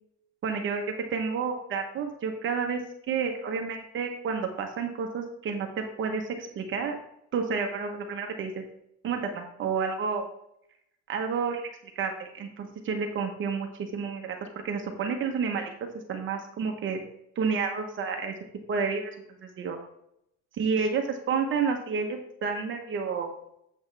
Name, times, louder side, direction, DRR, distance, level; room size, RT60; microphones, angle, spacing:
voice 1, 0.4-7.0 7.3-8.6 9.0-10.3 11.1-11.6 12.0-15.7 16.1-17.0 17.4-18.3 18.7-19.1 19.4-19.8 20.6-23.3, right 5 dB, 35° right, 4 dB, 0.9 m, -30 dB
7.9 x 7.3 x 3.3 m, 0.77 s
cardioid pair, 180°, 34 cm